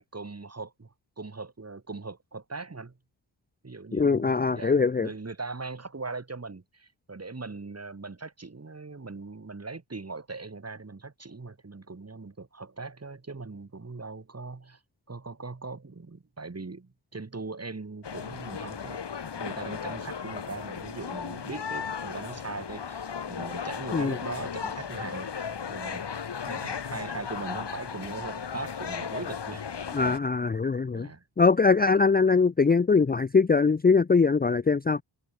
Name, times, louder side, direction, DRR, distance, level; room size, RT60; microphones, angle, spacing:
voice 1, 0.0-3.0 3.6-14.8 15.1-19.0 19.4-29.7 30.0-30.2 30.9-31.2, right 3 dB, 30° right, 7.0 m, -40 dB
voice 2, 3.9-5.1 23.9-24.2 29.9-31.1 31.4-35.0, left 4 dB, 20° left, 0.6 m, -22 dB
sound 1, 18.0-30.2, left 7 dB, 60° left, 3.6 m, -36 dB
wide cardioid pair, 95°, 46 cm